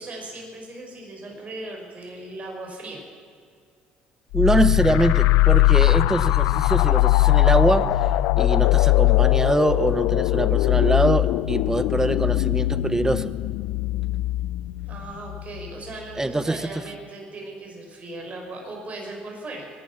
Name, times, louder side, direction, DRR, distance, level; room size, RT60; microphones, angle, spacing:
voice 1, 0.0-3.0 14.8-19.7, right 2 dB, 40° right, 0 dB, 5.2 m, -38 dB
sound 1, 4.3-15.7, left 17 dB, 80° left, 0.4 m, -20 dB
voice 2, 4.3-7.9 8.4-13.3 16.2-16.7, right 2 dB, 15° right, 14 dB, 0.9 m, -23 dB
22.5 x 10.0 x 6.0 m, 2.3 s
supercardioid pair, 75°, 4 cm